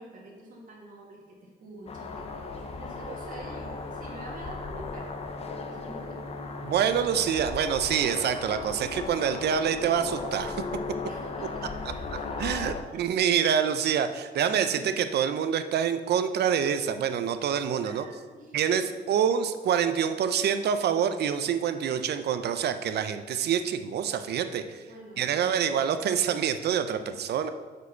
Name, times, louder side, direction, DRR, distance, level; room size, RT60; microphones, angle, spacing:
voice 1, 0.0-6.5 11.0-13.1 14.7-14.9 17.8-19.0 24.7-25.8, right 1 dB, 50° right, -1 dB, 2.0 m, -47 dB
sound 1, 1.9-12.8, left 4 dB, 35° left, 0.7 m, -36 dB
voice 2, 6.6-10.6 12.4-18.0 18.5-24.8 25.2-27.5, right 8 dB, 65° right, 10 dB, 0.6 m, -26 dB
6.3 x 5.1 x 6.7 m, 1.4 s
cardioid pair, 155°, 18 cm